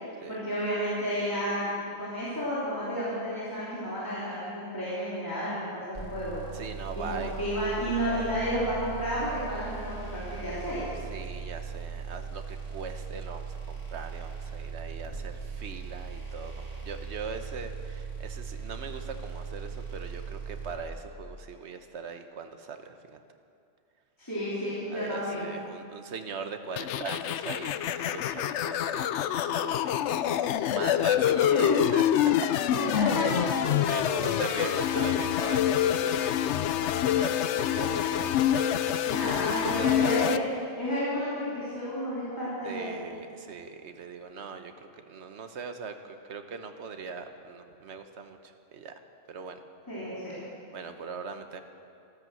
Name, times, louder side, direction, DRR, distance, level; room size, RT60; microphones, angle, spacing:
voice 1, 0.3-1.7 2.0-6.4 7.0-10.8 24.2-25.5 31.5-31.6 32.7-33.3 34.2-34.8 39.0-40.4 40.8-42.9 49.9-50.4, equal, 20° left, -10 dB, 3.4 m, -31 dB
sound 1, 5.9-20.7, right 5 dB, 55° right, 4.0 m, -39 dB
voice 2, 6.5-7.3 11.1-23.2 24.9-32.0 33.9-38.9 39.2-39.3 39.6-39.9 42.6-44.7 45.1-48.4 48.7-48.9 49.3-49.6 50.7-51.6, right 5 dB, 80° right, 7 dB, 1.2 m, -40 dB
sound 2, 26.8-40.4, left 10 dB, 85° left, 0.9 m, -26 dB
14.0 x 12.5 x 7.6 m, 2.5 s
omnidirectional pair, 1.1 m